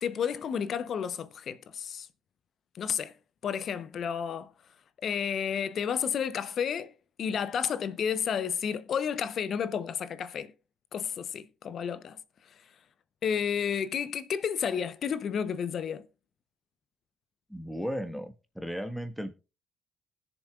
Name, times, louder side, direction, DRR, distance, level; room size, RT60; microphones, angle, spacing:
voice 1, 0.0-2.1 2.7-3.1 3.4-4.5 5.0-6.9 7.2-10.5 10.9-12.2 13.2-16.1, left 7 dB, 60° left, 0.8 m, -31 dB
voice 2, 17.5-19.3, equal, ahead, 1.4 m, -35 dB
20.0 x 6.9 x 2.4 m
hypercardioid pair, 50°, 0 cm